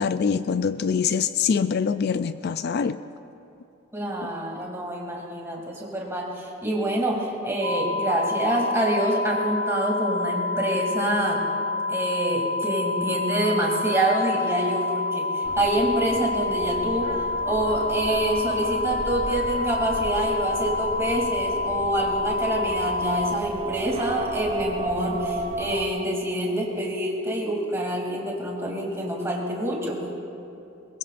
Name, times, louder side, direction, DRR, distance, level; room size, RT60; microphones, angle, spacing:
voice 1, 0.0-3.0 4.2-4.3, left 6 dB, 55° left, 12 dB, 0.3 m, -24 dB
voice 2, 3.9-11.4 11.9-17.1 17.5-30.0, right 1 dB, 15° right, -2 dB, 2.8 m, -26 dB
sound 1, 7.6-23.4, left 3 dB, 35° left, 1.2 m, -28 dB
sound 2, 15.4-25.9, right 2 dB, 30° right, 1.1 m, -35 dB
22.5 x 21.5 x 2.6 m, 2.7 s
head